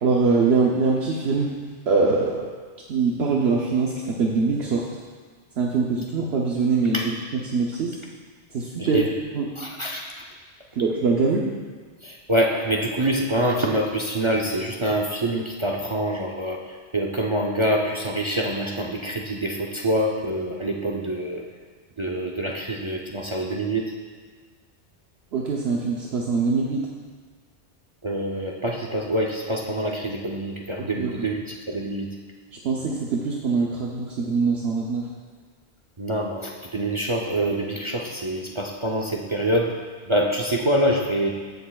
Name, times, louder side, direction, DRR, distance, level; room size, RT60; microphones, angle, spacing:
voice 1, 0.0-1.6 1.9-2.5 2.9-4.9 5.6-8.0 8.5-9.1 9.3-9.5 10.8-11.5 25.3-26.9 30.8-31.3 32.6-35.1, right 4 dB, 65° right, -2 dB, 1.0 m, -23 dB
voice 2, 8.8-9.1 9.6-10.1 12.0-16.6 16.9-21.4 22.0-23.8 28.0-32.1 36.0-39.7 40.1-41.3, right 1 dB, 35° right, 0 dB, 0.5 m, -25 dB
15.0 x 6.5 x 2.3 m, 1.5 s
omnidirectional pair, 1.2 m